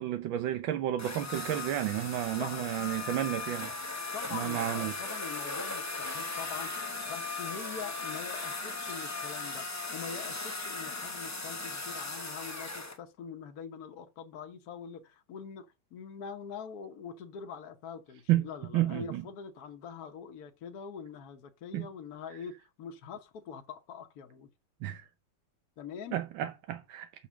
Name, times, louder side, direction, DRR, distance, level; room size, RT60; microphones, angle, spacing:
voice 1, 0.0-3.7 4.3-4.9 18.3-18.4 18.7-19.2 21.7-21.9 24.8-25.1 26.1-27.1, right 13 dB, 85° right, 1.5 m, -31 dB
sound 1, 1.0-13.0, left 3 dB, 15° left, 0.5 m, -38 dB
voice 2, 2.3-3.2 4.1-6.7 7.1-15.7 15.9-24.5 25.8-26.2, left 7 dB, 60° left, 1.2 m, -44 dB
6.6 x 5.7 x 6.2 m
omnidirectional pair, 2.1 m